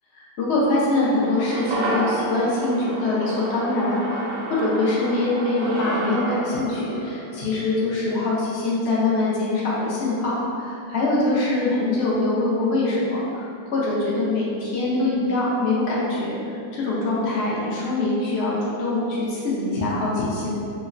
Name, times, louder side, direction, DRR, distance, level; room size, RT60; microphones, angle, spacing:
voice 1, 0.1-20.5, left 2 dB, 85° left, -6 dB, 0.5 m, -23 dB
sound 1, 1.0-9.5 9.8-9.9, right 1 dB, 90° right, 1.2 m, -31 dB
3.0 x 2.1 x 2.4 m, 2.6 s
omnidirectional pair, 1.9 m